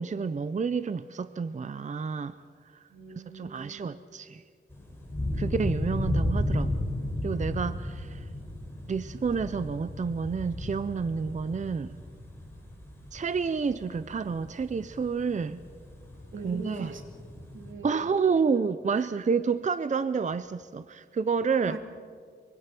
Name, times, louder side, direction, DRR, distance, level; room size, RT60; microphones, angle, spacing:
voice 1, 0.0-2.4 2.7-2.9 3.3-4.4 5.4-6.9 7.2-8.3 8.9-12.0 13.1-15.6 16.4-16.9 17.8-21.8, right 5 dB, 40° right, 14 dB, 0.5 m, -29 dB
voice 2, 2.9-4.0 16.3-17.0 17.5-18.0 19.0-19.1 21.6-21.8, right 3 dB, 80° right, 3 dB, 2.8 m, -42 dB
sound 1, 4.7-17.7, left 1 dB, 10° left, 5.5 m, -34 dB
24.0 x 24.0 x 6.0 m, 2.1 s
wide cardioid pair, 140°, 20 cm